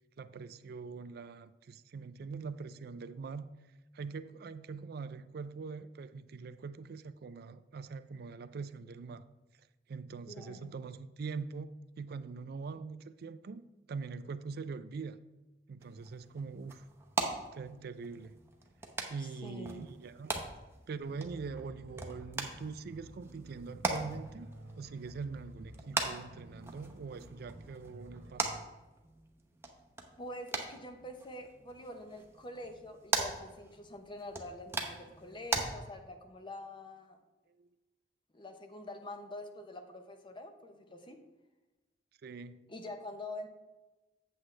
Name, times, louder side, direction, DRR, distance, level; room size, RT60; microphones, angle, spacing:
voice 1, 0.2-3.5 3.9-9.3 9.9-11.7 12.0-13.6 13.9-15.2 15.7-16.9 17.5-18.4 19.1-20.3 20.9-24.5 24.8-28.6 37.6-37.7 42.2-42.7, right 4 dB, 60° right, 0.4 m, -43 dB
voice 2, 10.3-10.7 19.2-19.9 30.2-37.2 38.3-41.2 42.7-43.5, left 1 dB, 30° left, 0.8 m, -46 dB
sound 1, 15.8-35.6, right 3 dB, 15° right, 0.8 m, -40 dB
sound 2, 21.0-28.6, right 1 dB, 80° right, 0.9 m, -53 dB
8.0 x 7.6 x 3.2 m
head